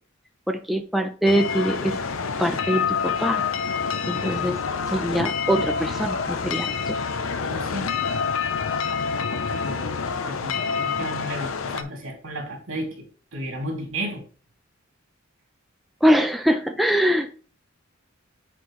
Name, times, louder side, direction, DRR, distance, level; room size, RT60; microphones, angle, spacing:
voice 1, 0.5-2.0 2.4-3.4 4.1-4.6 4.9-7.0 16.0-17.3, equal, ahead, 4 dB, 0.5 m, -23 dB
sound 1, 1.3-11.8, left 5 dB, 80° left, 0.7 m, -27 dB
voice 2, 7.5-7.9 9.5-10.0 10.2-14.2, right 1 dB, 70° right, 1 dB, 2.9 m, -33 dB
9.1 x 4.5 x 3.2 m, 0.40 s
head